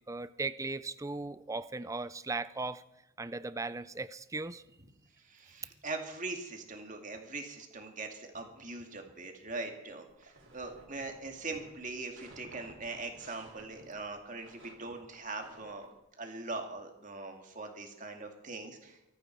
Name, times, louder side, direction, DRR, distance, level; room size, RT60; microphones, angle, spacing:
voice 1, 0.1-2.8 3.2-4.6, right 3 dB, 15° right, 15 dB, 0.4 m, -37 dB
voice 2, 5.2-15.9 16.2-19.0, right 3 dB, 35° right, 4 dB, 2.2 m, -41 dB
sound 1, 10.1-15.9, right 2 dB, 65° right, 3.3 m, -56 dB
24.5 x 9.3 x 4.7 m, 0.89 s
head